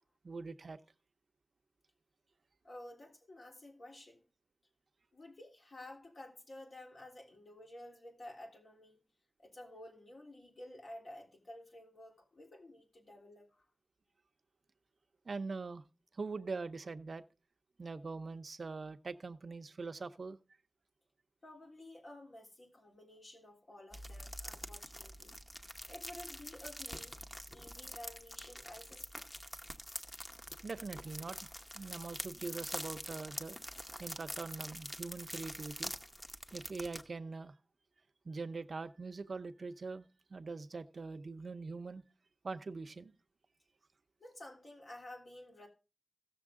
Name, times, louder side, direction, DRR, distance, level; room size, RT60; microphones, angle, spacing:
voice 1, 0.2-0.8 15.3-15.8 16.1-17.2 17.8-20.4 30.6-31.5 31.7-33.6 34.0-35.9 36.5-37.6 38.2-42.0 42.4-43.1, right 4 dB, 75° right, 0.6 m, -43 dB
voice 2, 2.6-4.2 5.1-9.0 9.4-13.7 21.4-25.3 25.9-27.1 27.5-29.3 44.2-45.7, left 1 dB, 70° left, 3.3 m, -52 dB
sound 1, 23.9-37.0, equal, 15° left, 0.9 m, -46 dB
16.0 x 6.9 x 3.6 m
wide cardioid pair, 95°, 0 cm